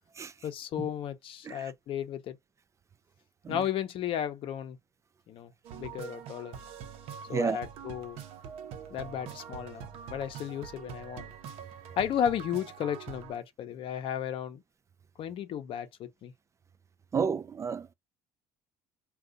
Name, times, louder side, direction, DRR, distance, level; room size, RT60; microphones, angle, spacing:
voice 1, 0.4-2.4 3.5-4.8 5.3-6.6 7.3-8.2 8.9-11.3 12.0-14.6 15.2-16.3, left 9 dB, 60° left, 0.7 m, -34 dB
sound 1, 5.6-13.4, right 8 dB, 75° right, 0.7 m, -44 dB
voice 2, 17.1-17.9, right 6 dB, 30° right, 0.3 m, -31 dB
2.6 x 2.4 x 3.7 m
supercardioid pair, 90°, 10 cm